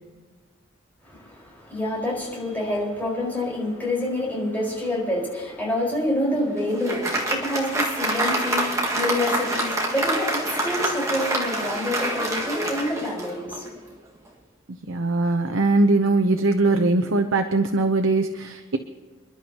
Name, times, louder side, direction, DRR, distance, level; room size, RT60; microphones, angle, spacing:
voice 1, 1.0-13.6, left 1 dB, 10° left, -4 dB, 4.9 m, -27 dB
Applause, 6.2-13.8, right 1 dB, 15° right, 1.9 m, -26 dB
voice 2, 14.9-18.8, right 2 dB, 75° right, 6 dB, 0.8 m, -21 dB
29.0 x 11.5 x 3.0 m, 1.5 s
head